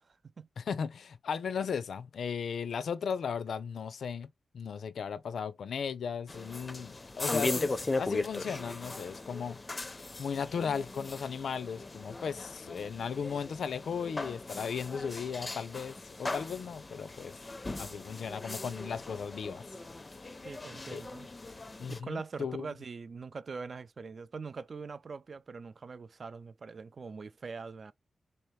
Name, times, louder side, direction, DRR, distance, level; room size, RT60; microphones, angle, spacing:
voice 1, 0.0-0.5 20.4-21.3 21.9-27.9, right 4 dB, 50° right, 0.4 m, -43 dB
voice 2, 0.6-4.3 4.5-9.6 10.2-17.3 17.7-19.6 20.9-21.0 21.8-22.7, left 6 dB, 85° left, 0.4 m, -36 dB
sound 1, 6.3-22.0, left 2 dB, 25° left, 0.5 m, -38 dB
3.9 x 2.8 x 3.1 m
wide cardioid pair, 125°, 0 cm